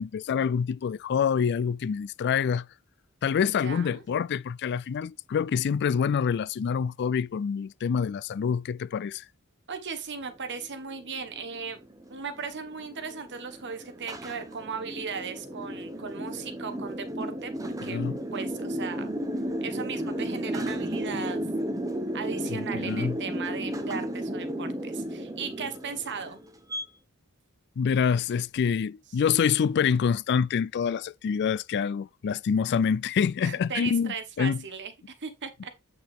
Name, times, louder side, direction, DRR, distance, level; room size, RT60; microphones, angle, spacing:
voice 1, 0.0-2.7 3.2-9.2 17.8-18.1 22.5-23.2 27.8-34.6, left 7 dB, 50° left, 0.3 m, -26 dB
voice 2, 3.4-4.0 9.7-11.8 12.1-19.1 19.6-21.4 22.1-26.4 33.4-35.7, right 5 dB, 55° right, 1.4 m, -37 dB
sound 1, 10.5-26.8, right 1 dB, 15° right, 1.1 m, -34 dB
8.6 x 5.8 x 3.6 m
head